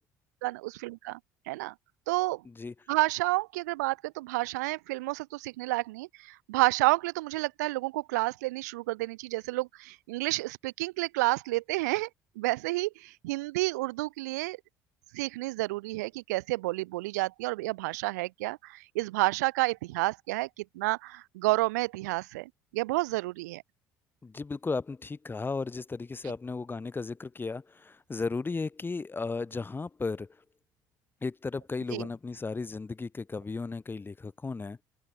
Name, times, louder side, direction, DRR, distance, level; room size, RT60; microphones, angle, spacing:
voice 1, 0.4-1.2 1.5-1.7 2.1-2.4 2.9-12.1 12.4-14.6 15.1-23.6 26.2-26.3 31.9-32.1, right 21 dB, 75° right, 1.9 m, -30 dB
voice 2, 24.2-30.3 31.2-34.8, left 4 dB, 20° left, 3.5 m, -35 dB
figure-of-eight pair, 60°, 9 cm